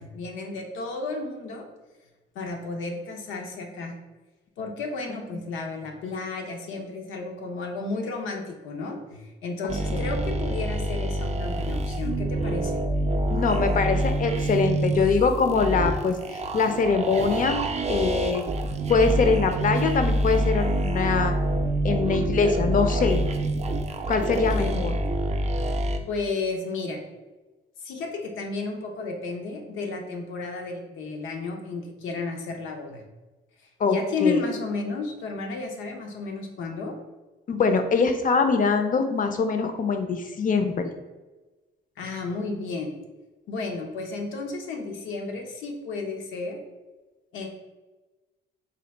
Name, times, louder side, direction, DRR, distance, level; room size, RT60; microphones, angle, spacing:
voice 1, 0.0-1.6 2.3-3.9 4.6-12.9 24.3-24.8 26.1-27.0 27.8-33.0 33.9-36.9 42.0-42.9 43.5-46.6 47.3-47.5, left 3 dB, 85° left, 3 dB, 0.7 m, -32 dB
sound 1, 9.7-26.0, right 1 dB, 35° right, 0.4 m, -26 dB
voice 2, 13.3-17.6 17.9-18.5 18.9-21.3 21.8-23.2 24.1-25.0 33.8-34.4 37.5-40.9, left 4 dB, 45° left, 7 dB, 0.5 m, -23 dB
3.9 x 2.3 x 3.3 m, 1.2 s
cardioid pair, 90°, 20 cm